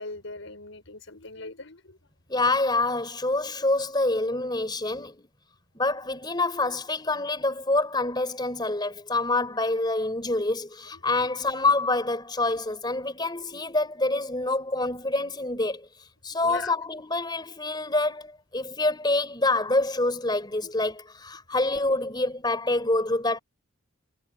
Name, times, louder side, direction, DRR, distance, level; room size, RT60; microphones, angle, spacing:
voice 1, 0.0-2.0 11.2-11.3 16.4-16.7 20.6-20.7, left 3 dB, 70° left, 5.5 m, -40 dB
voice 2, 2.3-5.3 5.7-15.9 16.2-23.4, left 2 dB, 20° left, 3.9 m, -26 dB
head